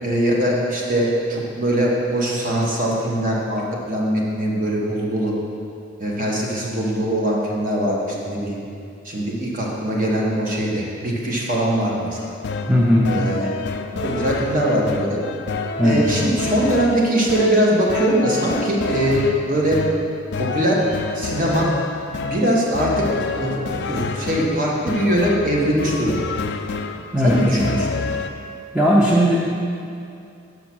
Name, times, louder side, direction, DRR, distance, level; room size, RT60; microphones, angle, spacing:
voice 1, 0.0-5.3 6.0-8.0 8.2-8.6 9.0-12.2 13.1-13.5 14.0-15.2 15.8-19.8 20.4-20.8 21.1-21.7 22.2-23.1 23.3-23.5 23.8-26.3 27.2-27.9, right 1 dB, 45° right, -3 dB, 1.2 m, -21 dB
sound 1, 12.2-28.3, left 4 dB, 60° left, 0.4 m, -28 dB
voice 2, 12.7-13.2 15.8-16.0 27.1-27.6 28.7-29.5, equal, 5° right, -5 dB, 0.6 m, -17 dB
6.0 x 4.9 x 6.0 m, 2.5 s
head